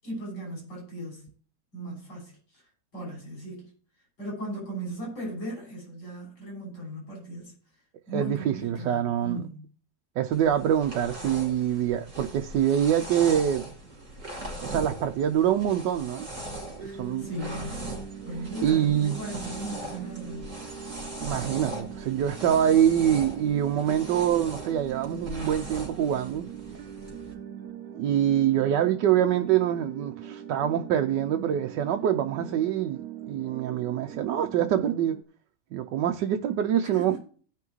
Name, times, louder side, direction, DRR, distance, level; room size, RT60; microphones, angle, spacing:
voice 1, 0.0-1.3 1.7-2.7 2.9-3.7 4.2-7.5 8.1-9.6 16.8-20.5 36.9-37.2, right 1 dB, 80° left, 6.7 m, -38 dB
voice 2, 8.1-9.4 10.2-13.6 14.6-16.3 16.9-17.3 18.6-19.2 21.2-26.5 28.0-35.2 35.7-37.2, right 10 dB, 85° right, 1.3 m, -25 dB
sound 1, 10.3-27.3, right 1 dB, 45° right, 3.3 m, -40 dB
sound 2, 16.8-35.2, right 9 dB, 65° right, 1.1 m, -41 dB
17.0 x 5.9 x 3.1 m
omnidirectional pair, 1.9 m